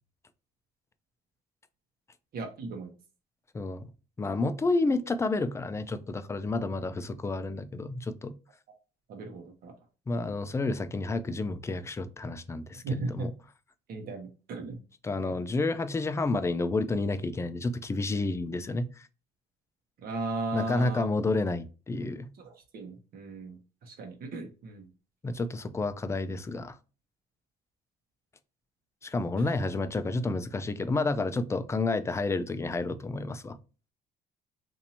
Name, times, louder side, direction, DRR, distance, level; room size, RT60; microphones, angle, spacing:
voice 1, 2.3-2.9 9.1-9.7 12.8-13.3 13.9-14.8 15.2-15.3 20.0-21.1 22.4-24.9 29.4-29.5, right 3 dB, 60° right, 1.0 m, -36 dB
voice 2, 3.5-3.9 4.2-8.3 10.1-12.8 13.1-13.3 15.0-19.1 20.5-22.3 25.2-26.8 29.0-33.6, left 3 dB, 15° left, 0.4 m, -30 dB
2.8 x 2.6 x 4.1 m
cardioid pair, 110°, 17 cm